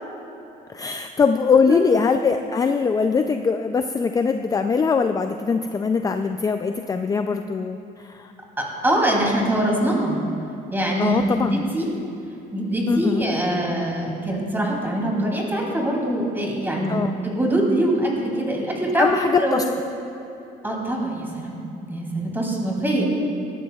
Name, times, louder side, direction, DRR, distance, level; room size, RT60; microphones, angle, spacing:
voice 1, 0.7-8.3 11.0-11.5 12.9-13.3 16.9-17.1 18.9-19.6, left 5 dB, 20° left, 7 dB, 0.4 m, -22 dB
voice 2, 8.6-10.2 10.7-11.9 12.5-19.6 20.6-21.6 21.9-23.1, right 1 dB, 10° right, -2 dB, 2.8 m, -23 dB
18.5 x 13.0 x 2.4 m, 2.9 s
cardioid pair, 110°, 17 cm